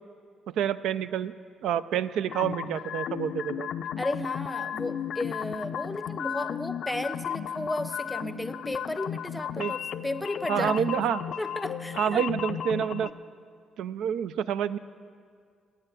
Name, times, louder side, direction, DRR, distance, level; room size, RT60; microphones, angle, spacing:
voice 1, 0.5-1.3 1.6-3.7 9.6-9.7 10.5-11.2 12.0-13.1 13.8-14.8, right 9 dB, 85° right, 15 dB, 0.3 m, -28 dB
sound 1, 2.3-13.1, left 9 dB, 70° left, 0.4 m, -34 dB
voice 2, 4.0-11.0 11.4-12.3 13.0-13.1, left 1 dB, 10° left, 11 dB, 0.6 m, -34 dB
9.0 x 8.8 x 9.7 m, 2.1 s
cardioid pair, 90°, 0 cm